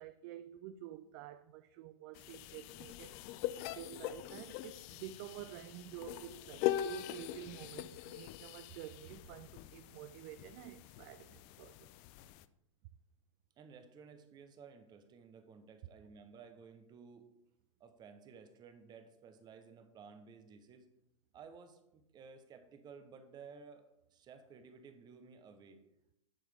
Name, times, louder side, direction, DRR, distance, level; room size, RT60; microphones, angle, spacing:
voice 1, 0.0-11.9, right 12 dB, 45° right, 0.4 m, -50 dB
sound 1, 2.2-12.5, left 13 dB, 40° left, 0.4 m, -42 dB
voice 2, 13.6-17.3 17.8-20.9 21.3-25.8, right 5 dB, 25° right, 0.9 m, -55 dB
10.5 x 4.6 x 3.5 m
hypercardioid pair, 110°, 17 cm